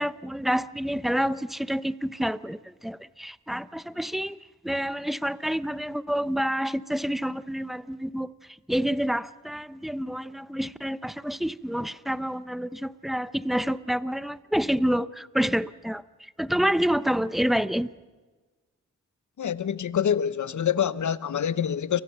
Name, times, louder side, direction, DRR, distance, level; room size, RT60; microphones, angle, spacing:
voice 1, 0.0-4.4 4.6-8.3 8.7-17.9, equal, ahead, 0.8 m, -28 dB
voice 2, 19.4-22.0, left 8 dB, 65° left, 1.0 m, -26 dB
29.5 x 24.0 x 5.7 m
cardioid pair, 60°, 31 cm